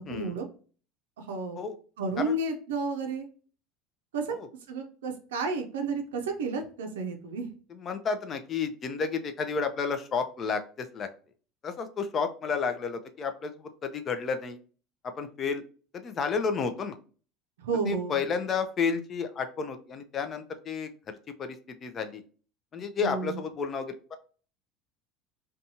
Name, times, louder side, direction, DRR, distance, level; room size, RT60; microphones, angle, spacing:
voice 1, 0.1-0.4 1.2-1.6 2.0-3.3 4.1-4.4 4.7-7.5 17.6-18.2 23.0-23.4, right 3 dB, 85° right, 4 dB, 0.4 m, -31 dB
voice 2, 7.8-11.1 11.6-14.6 15.2-15.6 15.9-16.9 17.9-22.2 22.7-24.2, left 5 dB, 40° left, 8 dB, 0.4 m, -31 dB
2.6 x 2.2 x 2.7 m, 0.40 s
hypercardioid pair, 90°, 0 cm